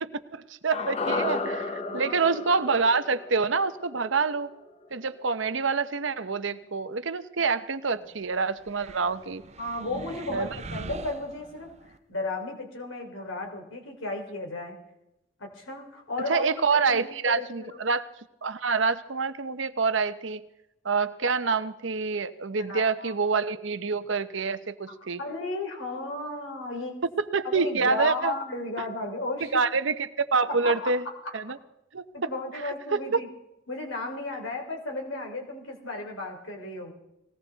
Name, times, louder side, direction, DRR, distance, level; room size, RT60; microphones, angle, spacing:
voice 1, 0.0-1.7 1.9-4.5 4.9-9.4 10.3-10.5 16.3-18.0 18.4-20.4 20.8-25.2 27.3-28.3 29.5-31.0 31.3-31.6 31.9-32.0 32.9-33.0, right 4 dB, 65° right, 12 dB, 0.9 m, -26 dB
sound 1, 0.7-5.0 5.3-5.4, left 3 dB, 30° left, 0.8 m, -33 dB
sound 2, 8.6-12.0, right 3 dB, 35° right, 0.5 m, -42 dB
voice 2, 9.6-14.8 15.4-17.8 22.5-23.1 24.9-27.0 27.4-29.7 30.4-31.4 32.1-33.3 33.7-36.9, left 2 dB, 75° left, 2 dB, 3.5 m, -34 dB
20.0 x 17.0 x 4.0 m, 0.89 s
head